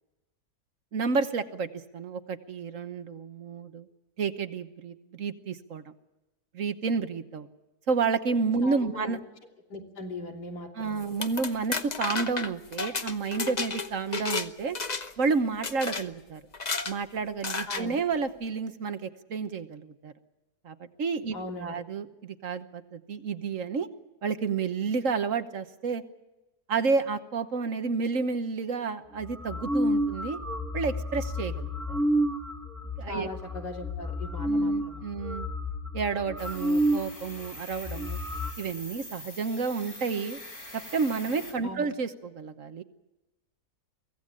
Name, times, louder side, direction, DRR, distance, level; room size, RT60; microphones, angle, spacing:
voice 1, 0.9-3.9 4.2-5.9 6.5-7.5 7.9-9.2 10.7-14.8 15.2-16.4 16.9-20.1 20.6-21.3 21.6-23.9 24.2-26.0 26.7-30.4 30.7-32.0 33.0-33.3 34.4-35.5 35.9-38.2 38.6-40.4 40.7-42.8, right 5 dB, 55° right, 10 dB, 1.4 m, -30 dB
voice 2, 8.6-9.2 9.7-11.1 17.7-18.0 21.3-21.9 33.1-35.0 41.6-41.8, left 2 dB, 80° left, 1 dB, 3.7 m, -39 dB
sound 1, 11.0-14.5 14.8-15.2 15.6-16.0 16.5-16.9 17.4-17.8, left 4 dB, 30° left, 0.9 m, -32 dB
sound 2, 29.2-37.1 37.4-37.5 37.7-38.5, equal, ahead, 2.2 m, -30 dB
sound 3, 36.4-41.5, left 1 dB, 50° left, 4.8 m, -44 dB
23.5 x 17.0 x 8.7 m, 1.0 s
omnidirectional pair, 1.7 m